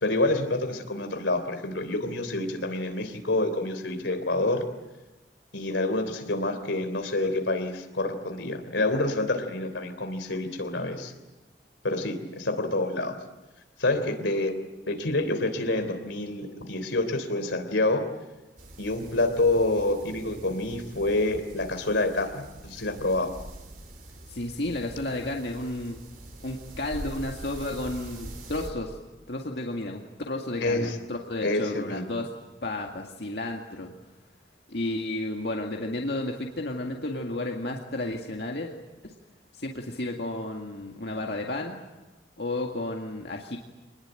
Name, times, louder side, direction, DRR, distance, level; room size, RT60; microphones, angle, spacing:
voice 1, 0.0-4.6 5.5-11.1 11.8-13.1 13.8-14.5 14.9-18.0 18.8-23.3 30.6-31.0 31.4-32.0, left 2 dB, 90° left, 7 dB, 3.5 m, -27 dB
sound 1, 18.6-28.7, right 1 dB, 45° right, 3.5 m, -44 dB
voice 2, 24.3-26.0 26.4-29.0 29.3-32.3 32.6-33.9 34.7-38.7 39.0-39.1 39.5-41.8 42.4-43.6, left 2 dB, 65° left, 1 dB, 2.1 m, -32 dB
26.0 x 20.5 x 9.1 m, 1.1 s
head